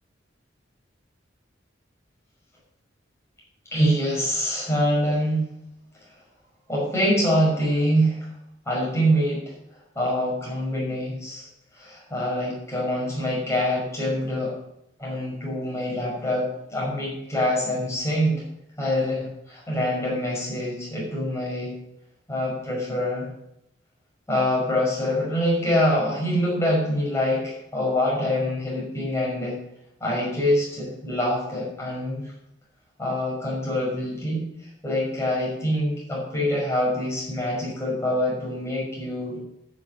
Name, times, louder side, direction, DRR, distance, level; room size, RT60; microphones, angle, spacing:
voice 1, 3.7-5.5 6.7-8.3 8.7-9.4 10.0-11.5 11.8-14.5 15.0-18.4 18.8-21.7 22.3-23.3 24.3-29.6 30.0-32.2 33.0-34.5 34.8-39.4, equal, 15° left, -4 dB, 5.8 m, -25 dB
10.5 x 6.7 x 8.9 m, 0.83 s
head